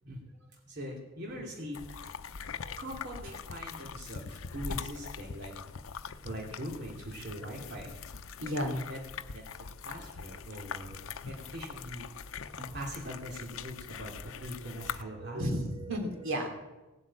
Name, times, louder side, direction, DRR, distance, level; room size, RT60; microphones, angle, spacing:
voice 1, 0.7-1.8 2.8-5.5 6.2-7.9 8.8-9.0 9.3-9.4 9.8-12.1 12.7-15.6, equal, 55° right, -2 dB, 2.6 m, -42 dB
sound 1, 1.7-15.0, left 6 dB, 85° left, 0.6 m, -42 dB
voice 2, 2.2-2.7 7.3-7.6 8.4-8.8 12.6-12.8 14.8-14.9 15.2-16.5, equal, 80° right, 2 dB, 3.3 m, -35 dB
18.0 x 8.2 x 8.8 m, 1.1 s
head